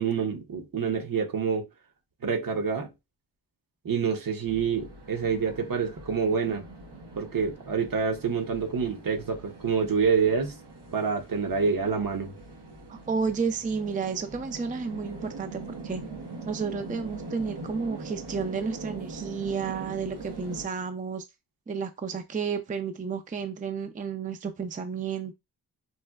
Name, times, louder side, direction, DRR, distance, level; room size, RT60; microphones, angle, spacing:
voice 1, 0.0-1.7 2.2-2.9 3.8-6.6 7.2-10.6 10.9-12.3, right 6 dB, 60° right, 0.8 m, -27 dB
sound 1, 4.4-20.7, right 3 dB, 90° right, 0.9 m, -42 dB
voice 2, 12.9-16.0 16.5-21.2 21.7-25.3, right 5 dB, 20° right, 0.4 m, -31 dB
4.1 x 2.1 x 2.3 m
cardioid pair, 45°, 39 cm